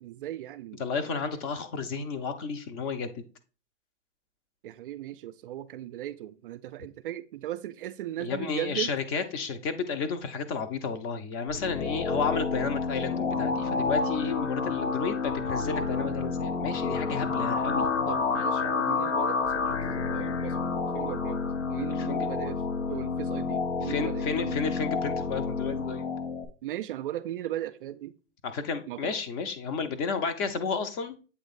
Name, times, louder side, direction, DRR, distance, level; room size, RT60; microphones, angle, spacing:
voice 1, 0.0-1.2 4.6-8.9 18.1-21.4 21.7-24.6 26.6-28.1 28.9-29.2, right 13 dB, 50° right, 0.4 m, -37 dB
voice 2, 0.8-3.2 8.2-17.9 22.0-22.3 23.8-26.1 28.4-31.2, left 5 dB, 30° left, 0.6 m, -32 dB
sound 1, 11.5-26.5, left 4 dB, 85° left, 1.0 m, -29 dB
7.9 x 3.0 x 4.1 m
hypercardioid pair, 130°, 35 cm